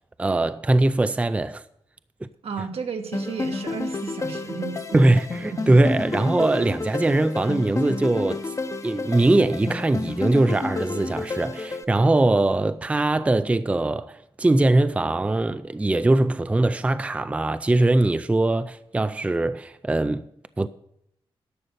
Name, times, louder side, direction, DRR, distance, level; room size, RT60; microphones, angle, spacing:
voice 1, 0.2-1.6 2.2-2.3 4.9-8.5 8.8-20.3 20.6-20.7, right 2 dB, 15° right, 0.4 m, -21 dB
voice 2, 2.4-5.0 5.5-5.8, right 5 dB, 75° right, 1.4 m, -33 dB
sound 1, 3.1-11.8, left 3 dB, 35° left, 0.8 m, -31 dB
11.0 x 6.5 x 6.6 m
wide cardioid pair, 105°, 10 cm